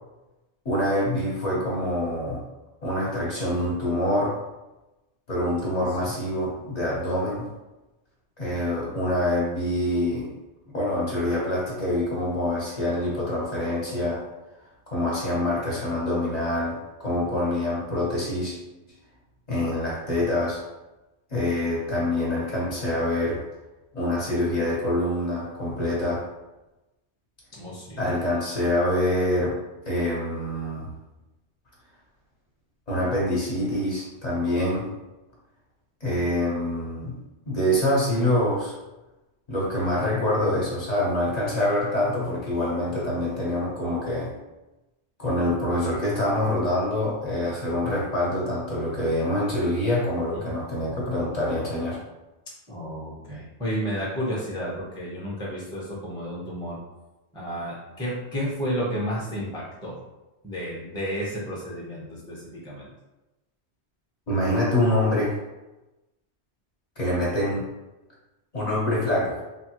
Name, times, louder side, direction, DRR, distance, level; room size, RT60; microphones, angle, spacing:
voice 1, 0.6-2.4 2.8-4.4 5.3-7.5 8.4-10.3 10.7-14.2 14.9-18.6 19.5-20.6 21.3-23.4 23.9-26.3 28.0-30.9 32.9-34.9 36.0-37.2 37.5-38.8 39.5-44.3 45.2-52.0 64.3-65.4 67.0-67.7 68.5-69.4, left 1 dB, 40° left, -6 dB, 0.9 m, -25 dB
voice 2, 27.5-28.1 50.4-50.5 52.7-56.8 57.3-60.0 60.4-62.9, equal, 5° left, -5 dB, 0.6 m, -32 dB
3.4 x 2.2 x 2.9 m, 1.0 s
omnidirectional pair, 1.1 m